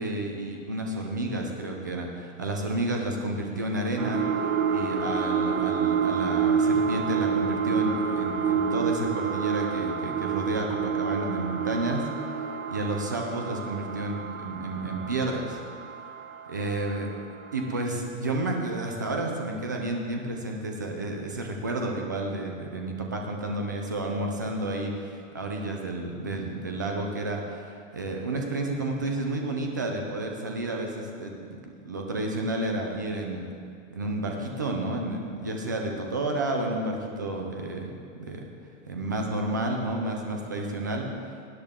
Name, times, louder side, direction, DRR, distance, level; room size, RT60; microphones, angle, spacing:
voice 1, 0.0-4.2 4.7-12.1 12.7-15.6 16.5-17.1 17.5-27.7 27.9-33.5 33.9-38.4 38.9-41.1, right 2 dB, 15° right, 1 dB, 0.3 m, -31 dB
sound 1, 4.0-17.1 17.6-17.7, right 6 dB, 85° right, 1.5 m, -28 dB
19.0 x 10.0 x 3.6 m, 2.3 s
supercardioid pair, 170°, 41 cm